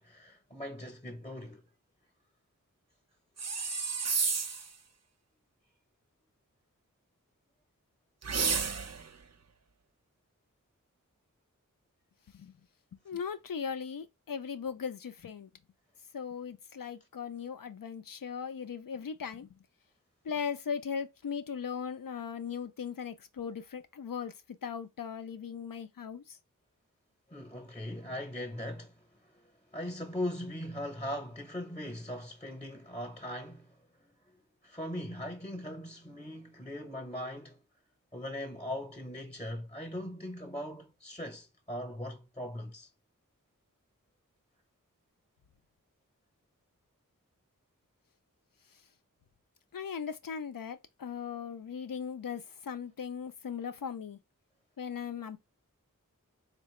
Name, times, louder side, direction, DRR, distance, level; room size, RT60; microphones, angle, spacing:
voice 1, 0.0-1.7 27.3-34.1 34.6-37.6 38.1-42.9, left 1 dB, 15° left, 0.8 m, -40 dB
sound 1, 3.4-4.7 8.2-9.1, right 5 dB, 55° right, 0.5 m, -31 dB
voice 2, 13.1-15.5 16.1-19.6 20.2-24.3 24.6-26.4 49.7-54.2 54.8-55.4, left 7 dB, 80° left, 0.5 m, -38 dB
3.8 x 2.2 x 3.1 m
wide cardioid pair, 45°, 33 cm